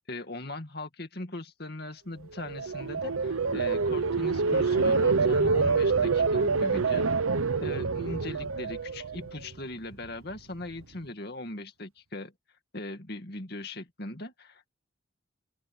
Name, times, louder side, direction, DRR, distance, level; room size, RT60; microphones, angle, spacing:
voice 1, 0.1-7.1 7.6-12.3 12.7-14.7, left 2 dB, 50° left, 2.3 m, -39 dB
sound 1, 2.3-9.5 9.9-10.3, right 4 dB, 90° right, 0.8 m, -26 dB
open air
head